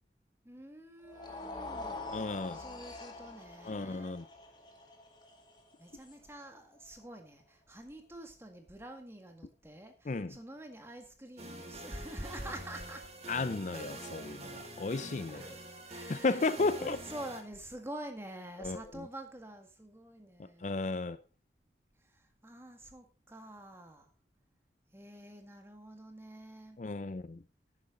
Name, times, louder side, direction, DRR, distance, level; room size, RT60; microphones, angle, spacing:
voice 1, 0.4-2.1 2.5-4.2 5.8-13.1 15.3-16.5 16.8-20.7 22.0-24.1 24.9-26.8, right 1 dB, 15° right, 1.9 m, -47 dB
sound 1, 1.0-7.3, left 2 dB, 25° left, 2.0 m, -46 dB
voice 2, 2.1-2.6 3.6-4.2 10.1-10.3 13.3-15.5 16.1-17.0 18.6-18.8 20.6-21.2 26.8-27.4, left 3 dB, 40° left, 0.5 m, -34 dB
sound 2, 11.4-17.4, right 1 dB, 35° right, 2.0 m, -46 dB
11.5 x 9.7 x 3.8 m
head